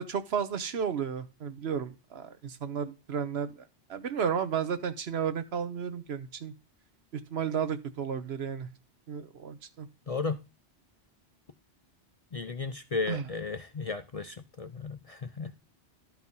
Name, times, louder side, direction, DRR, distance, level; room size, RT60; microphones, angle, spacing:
voice 1, 0.0-3.6 3.9-6.5 7.1-8.7 9.1-9.9 13.1-13.3, right 7 dB, 65° right, 1.1 m, -33 dB
voice 2, 10.1-10.4 12.3-15.6, left 4 dB, 45° left, 0.5 m, -34 dB
12.0 x 4.6 x 5.4 m
omnidirectional pair, 1.2 m